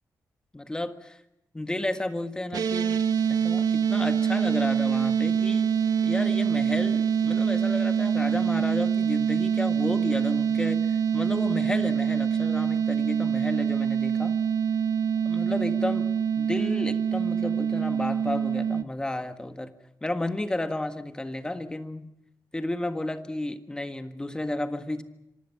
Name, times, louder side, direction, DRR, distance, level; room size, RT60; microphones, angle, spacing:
voice 1, 0.5-1.2 1.5-3.0 3.3-5.7 6.0-14.3 15.2-16.1 16.4-19.7 20.0-22.1 22.5-25.0, left 1 dB, 10° left, 8 dB, 1.6 m, -32 dB
sound 1, 2.5-18.8, right 7 dB, 70° right, 1.1 m, -25 dB
26.5 x 24.5 x 5.9 m, 0.83 s
wide cardioid pair, 140°, 7 cm